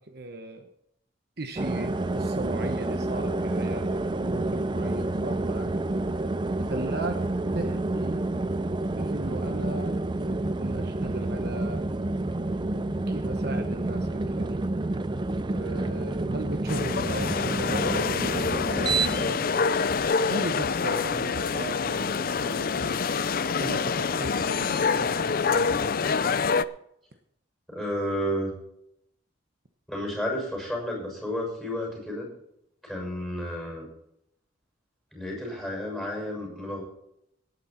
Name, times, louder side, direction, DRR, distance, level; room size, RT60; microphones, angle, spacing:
voice 1, 0.1-0.7 1.4-5.7 6.7-7.3 7.5-8.3 8.9-11.8 13.1-14.6 15.5-19.7 20.3-23.0 23.5-26.1, right 2 dB, 55° right, 6 dB, 1.1 m, -37 dB
sound 1, 1.6-19.3, right 2 dB, 25° right, 0.4 m, -29 dB
sound 2, 16.7-26.6, left 5 dB, 45° left, 0.5 m, -26 dB
voice 2, 27.7-28.5 29.9-32.3 32.8-33.9 35.1-36.8, equal, ahead, 0 dB, 6.5 m, -31 dB
18.0 x 9.5 x 4.4 m, 0.76 s
head